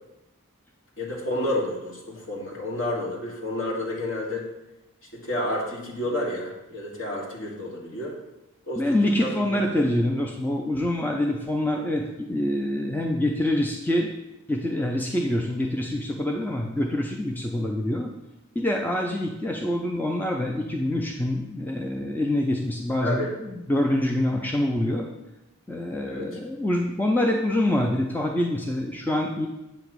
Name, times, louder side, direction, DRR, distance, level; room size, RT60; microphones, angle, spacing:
voice 1, 1.0-4.4 5.1-8.1 8.7-9.6 23.0-23.3 26.0-26.4, left 1 dB, 60° left, -3 dB, 1.6 m, -30 dB
voice 2, 8.8-14.1 14.5-18.1 18.6-25.1 25.7-29.5, left 1 dB, 10° left, 1 dB, 0.4 m, -25 dB
8.0 x 3.0 x 6.0 m, 0.95 s
head